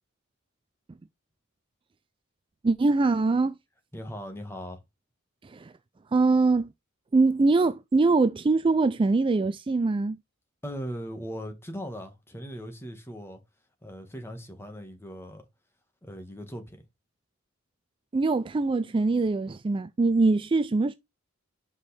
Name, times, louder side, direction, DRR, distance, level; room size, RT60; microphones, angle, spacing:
voice 1, 2.6-3.6 5.4-5.7 6.1-6.7 7.1-10.2 18.1-20.9, right 3 dB, 25° right, 0.4 m, -23 dB
voice 2, 3.9-4.8 10.6-13.4 13.8-15.4 16.0-16.8, equal, 10° left, 1.5 m, -39 dB
6.2 x 5.4 x 3.4 m
head